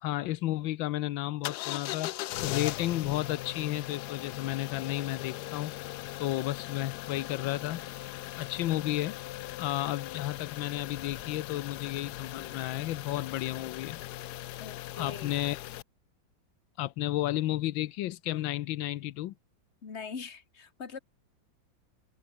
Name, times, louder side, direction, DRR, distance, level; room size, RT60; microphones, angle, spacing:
voice 1, 0.0-2.1 2.4-5.7 6.2-7.9 8.4-9.2 9.6-14.0 14.9-15.6 16.8-19.3, left 15 dB, 90° left, 1.4 m, -32 dB
sound 1, 1.4-15.8, left 15 dB, 70° left, 1.0 m, -39 dB
voice 2, 14.6-15.4 19.8-21.0, left 5 dB, 35° left, 2.0 m, -42 dB
omnidirectional pair, 2.1 m